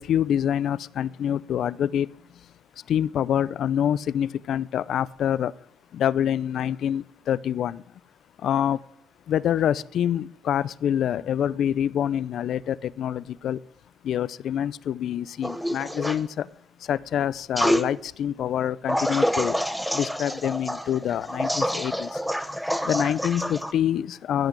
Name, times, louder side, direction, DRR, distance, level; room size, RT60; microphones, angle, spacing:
voice 1, 0.0-2.1 2.9-5.5 5.9-7.8 8.4-8.8 9.3-13.6 14.0-16.5 16.8-19.6 19.9-22.2 22.8-24.5, left 10 dB, 70° left, 20 dB, 0.5 m, -26 dB
sound 1, 15.4-16.2 17.6-17.9 18.9-23.7, equal, ahead, 0.9 m, -27 dB
15.5 x 6.0 x 8.8 m, 0.70 s
cardioid pair, 90°, 0 cm